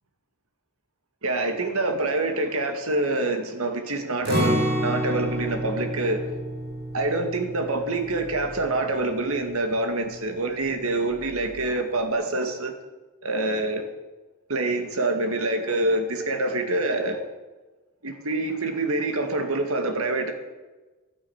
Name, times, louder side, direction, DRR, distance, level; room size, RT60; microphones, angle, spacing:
voice 1, 1.2-6.2 6.9-12.7 13.2-13.8 14.5-17.2 18.0-20.3, right 2 dB, 80° right, 5 dB, 2.1 m, -26 dB
Acoustic guitar, 4.2-10.1 10.5-10.6 11.1-11.6, equal, 50° right, 4.9 m, -30 dB
11.5 x 10.0 x 8.9 m, 1.2 s
head